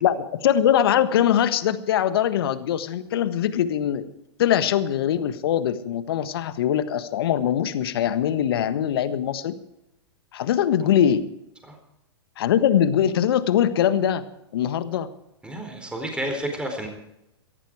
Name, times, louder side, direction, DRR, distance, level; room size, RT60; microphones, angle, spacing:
voice 1, 0.0-4.1 4.4-9.5 10.3-11.2 12.4-14.2 14.5-15.1, left 10 dB, 60° left, 12 dB, 1.4 m, -22 dB
voice 2, 15.4-16.9, right 1 dB, 5° right, 4 dB, 4.2 m, -30 dB
17.5 x 14.0 x 4.9 m, 0.85 s
hypercardioid pair, 110°, 14 cm